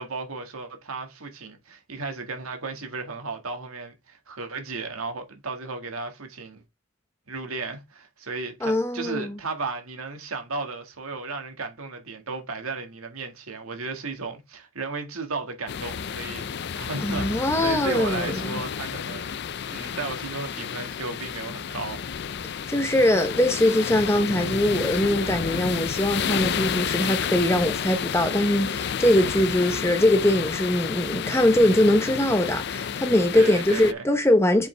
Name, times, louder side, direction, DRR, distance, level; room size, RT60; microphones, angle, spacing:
voice 1, 0.0-6.6 7.3-19.3 19.7-22.0 33.3-34.0, right 3 dB, 90° right, 1.8 m, -34 dB
voice 2, 8.6-9.4 17.0-18.6 22.7-34.7, left 1 dB, 10° left, 0.8 m, -22 dB
sound 1, 15.7-33.9, left 7 dB, 50° left, 0.4 m, -30 dB
7.1 x 5.3 x 3.3 m
head